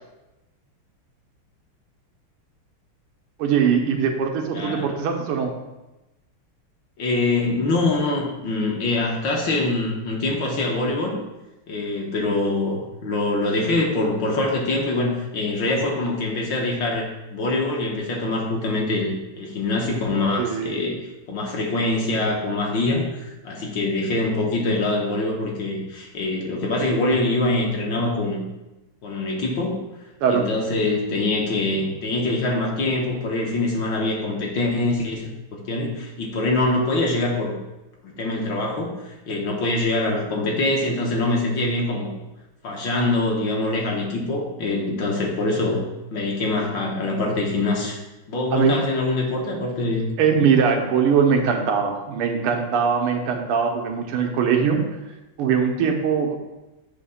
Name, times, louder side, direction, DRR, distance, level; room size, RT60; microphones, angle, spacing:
voice 1, 3.4-5.5 20.4-20.8 30.2-30.4 48.5-48.8 50.2-54.8 55.4-56.4, right 6 dB, 90° right, 3 dB, 1.8 m, -21 dB
voice 2, 4.5-4.9 7.0-11.1 11.7-21.0 21.3-28.4 29.0-29.8 30.3-37.5 38.0-42.1 42.6-45.8 46.1-48.0 48.3-50.1, left 2 dB, 60° left, -1 dB, 1.7 m, -24 dB
8.2 x 2.9 x 5.6 m, 1.0 s
omnidirectional pair, 2.4 m